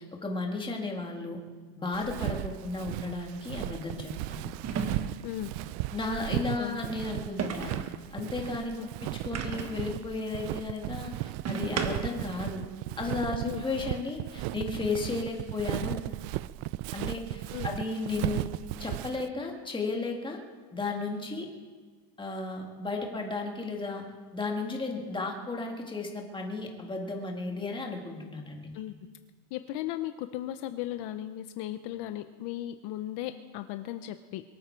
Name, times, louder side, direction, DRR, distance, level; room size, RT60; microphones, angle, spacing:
voice 1, 0.0-1.4 1.8-4.5 5.9-7.8 8.1-8.7 9.2-11.1 11.5-12.6 13.0-16.0 16.9-18.5 18.8-20.4 20.7-21.5 22.2-24.0 24.3-28.7, left 3 dB, 10° left, 1 dB, 1.8 m, -34 dB
Walk footsteps, 1.9-19.3, right 17 dB, 65° right, 0.5 m, -36 dB
sound 1, 2.4-2.6 4.6-5.4 7.4-8.0 9.3-9.9 11.4-12.3, right 6 dB, 30° right, 1.1 m, -34 dB
voice 2, 29.5-34.4, left 13 dB, 55° left, 10 dB, 0.8 m, -36 dB
23.0 x 12.5 x 4.5 m, 1.4 s
cardioid pair, 160°, 49 cm